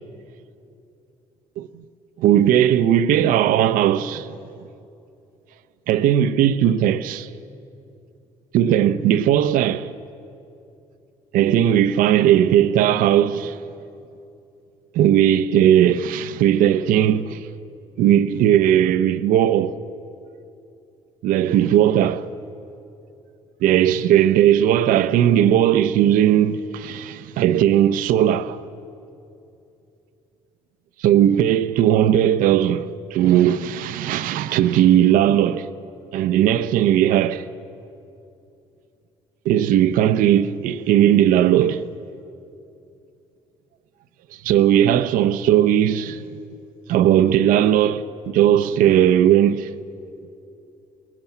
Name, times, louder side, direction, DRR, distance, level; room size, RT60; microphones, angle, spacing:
voice 1, 2.2-4.3 5.9-7.3 8.5-9.9 11.3-13.6 14.9-17.4 18.0-19.8 21.2-22.3 23.6-28.6 31.0-35.7 36.1-37.4 39.4-41.8 44.4-46.2 46.9-49.7, right 10 dB, 70° right, 0.7 m, -17 dB
21.5 x 13.5 x 9.2 m
hypercardioid pair, 55°, 15 cm